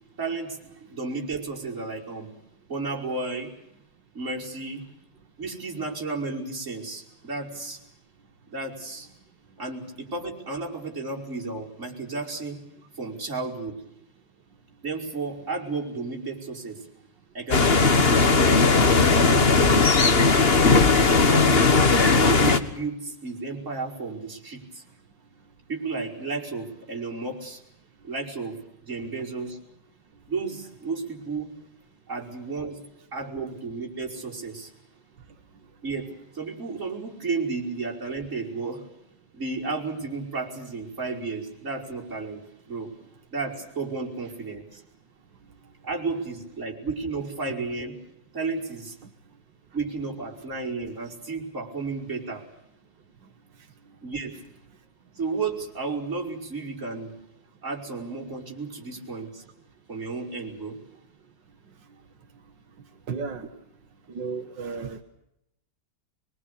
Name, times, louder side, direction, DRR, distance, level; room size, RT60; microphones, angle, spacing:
voice 1, 0.2-2.3 2.7-3.5 4.1-4.9 5.4-7.8 8.5-9.1 9.6-12.6 13.0-13.8 14.8-16.8 17.3-19.9 20.6-21.8 22.1-24.8 25.7-27.6 28.0-29.6 30.3-31.5 32.1-32.8 33.1-34.7 35.8-38.8 39.3-42.9 43.3-44.8 45.8-47.9 48.3-49.0 49.7-52.4 54.0-54.4 55.2-57.1 57.6-59.4 59.9-60.8, right 3 dB, 45° right, -3 dB, 5.7 m, -33 dB
sound 1, 17.5-22.6, left 4 dB, 35° left, 1.7 m, -18 dB
voice 2, 63.1-63.4 64.2-65.0, right 5 dB, 90° right, 6 dB, 2.1 m, -32 dB
24.0 x 23.5 x 8.3 m, 0.81 s
omnidirectional pair, 1.9 m